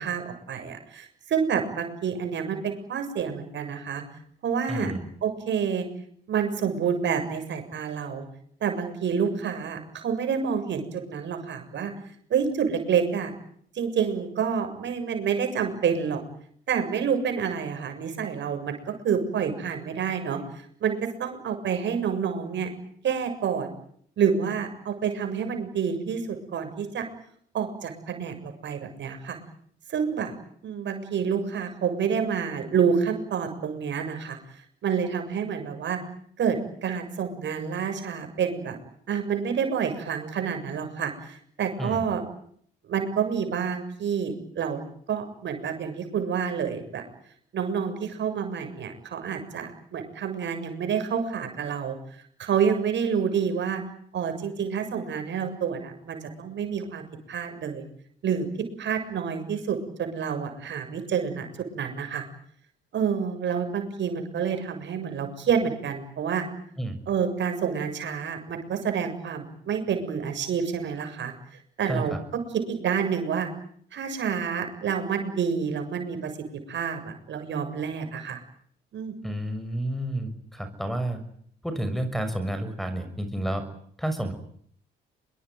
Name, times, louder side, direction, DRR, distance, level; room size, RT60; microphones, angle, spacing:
voice 1, 0.0-4.0 4.4-4.9 5.2-5.9 6.3-8.2 8.6-11.9 12.3-13.3 13.8-16.2 16.7-20.4 20.8-22.7 23.0-23.7 24.2-27.1 27.5-29.4 29.9-30.3 30.6-34.4 34.8-36.0 36.4-38.8 39.1-42.2 42.8-47.0 47.5-52.0 52.4-53.8 54.1-57.8 58.2-58.5 58.8-61.5 61.7-62.2 62.9-66.5 67.1-71.3 71.8-72.1 72.5-73.5 73.9-76.3 76.7-78.4 78.9-79.2, right 7 dB, 65° right, 6 dB, 7.2 m, -28 dB
voice 2, 4.7-5.0 41.8-42.0 66.8-67.0 71.9-72.2 79.2-81.2 81.6-83.6 84.0-84.3, right 1 dB, ahead, 10 dB, 6.4 m, -30 dB
26.0 x 22.5 x 9.4 m, 0.65 s
cardioid pair, 90°, 20 cm